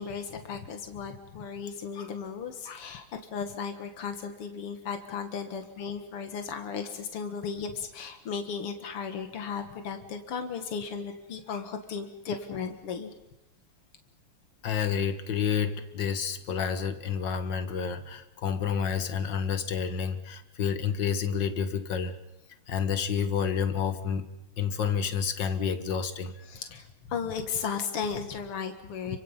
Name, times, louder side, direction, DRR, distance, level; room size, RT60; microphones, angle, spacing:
voice 1, 0.0-3.1 3.3-13.1 26.5-29.2, left 6 dB, 90° left, 6 dB, 2.6 m, -35 dB
voice 2, 14.6-22.2 22.7-24.3 24.6-26.3, left 7 dB, 55° left, 9 dB, 2.2 m, -29 dB
30.0 x 25.0 x 5.6 m, 0.94 s
omnidirectional pair, 2.4 m